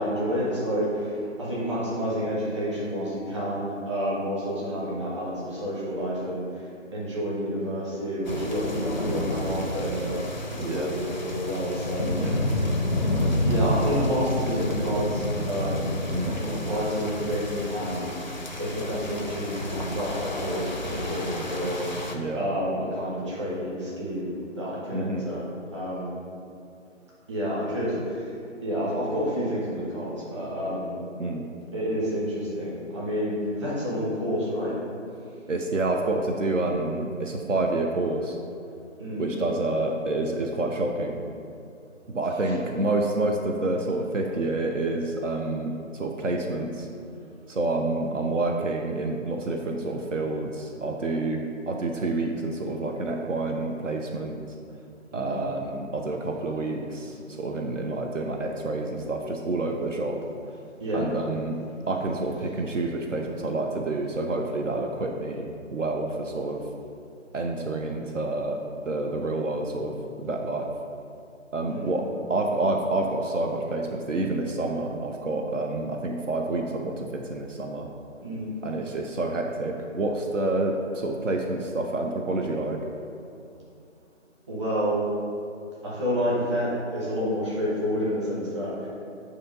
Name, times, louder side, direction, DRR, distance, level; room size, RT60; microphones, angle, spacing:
voice 1, 0.0-6.6 6.9-12.4 13.4-15.9 16.3-18.1 18.6-22.1 22.3-26.1 27.3-28.3 28.6-30.9 31.7-34.7 39.0-39.3 42.4-42.5 55.1-55.4 60.8-61.1 71.7-71.9 78.2-78.5 84.5-85.0 85.8-88.9, equal, 20° right, -7 dB, 1.2 m, -29 dB
sound 1, 8.2-22.1, left 1 dB, 35° left, 0.4 m, -30 dB
voice 2, 10.6-10.9 12.2-12.5 16.1-16.4 22.1-22.5 24.9-25.2 31.2-31.5 35.5-38.4 39.2-41.2 42.1-46.9 47.5-54.4 55.1-60.2 60.9-61.6 61.9-66.6 67.3-68.6 68.9-70.7 71.5-77.9 78.6-82.8, right 2 dB, 70° right, 2 dB, 0.7 m, -28 dB
8.4 x 2.8 x 5.3 m, 2.6 s
figure-of-eight pair, 160°, 39 cm